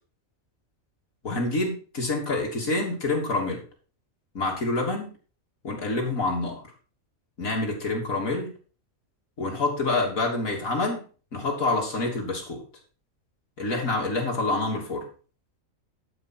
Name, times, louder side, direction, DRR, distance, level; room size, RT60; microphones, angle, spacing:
voice 1, 1.2-3.6 4.4-5.1 5.6-6.6 7.4-8.5 9.4-11.0 11.3-12.6 13.6-15.1, left 2 dB, 90° left, -1 dB, 3.5 m, -27 dB
11.5 x 5.7 x 6.0 m, 0.38 s
omnidirectional pair, 1.4 m